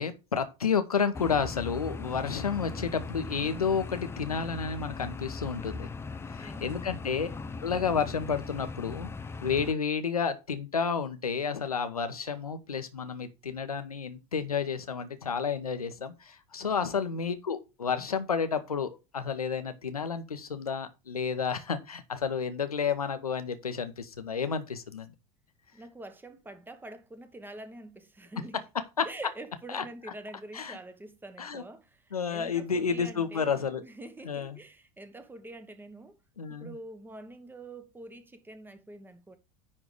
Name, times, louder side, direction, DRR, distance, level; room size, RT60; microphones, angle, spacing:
voice 1, 0.0-5.9 6.3-7.3 7.6-9.1 9.4-25.1 29.0-29.1 29.7-29.8 30.5-30.8 31.4-31.6 32.1-33.8 34.3-34.6 36.4-36.7, left 6 dB, 80° left, 1.0 m, -31 dB
sound 1, 1.1-9.7, left 4 dB, 15° left, 0.5 m, -39 dB
voice 2, 6.4-6.9 16.6-16.9 25.7-28.6 29.0-36.2 36.5-39.4, right 2 dB, 10° right, 1.2 m, -46 dB
9.8 x 3.7 x 4.9 m
figure-of-eight pair, 75°, 19 cm